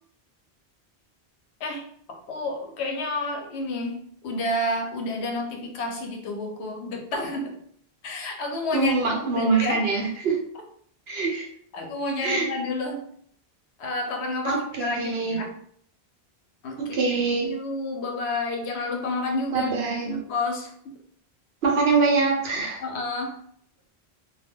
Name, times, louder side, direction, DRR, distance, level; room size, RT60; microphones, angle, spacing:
voice 1, 1.6-7.5 8.0-8.9 9.3-9.8 11.7-13.1 13.8-15.5 16.6-17.0 17.4-19.7 20.0-20.9 22.8-23.4, left 2 dB, 85° left, 3 dB, 0.9 m, -30 dB
voice 2, 8.7-10.4 11.1-11.4 12.2-12.5 14.4-15.4 16.8-17.5 19.5-20.2 21.6-22.8, right 4 dB, 75° right, 0 dB, 0.9 m, -24 dB
2.2 x 2.2 x 3.5 m, 0.64 s
omnidirectional pair, 1.1 m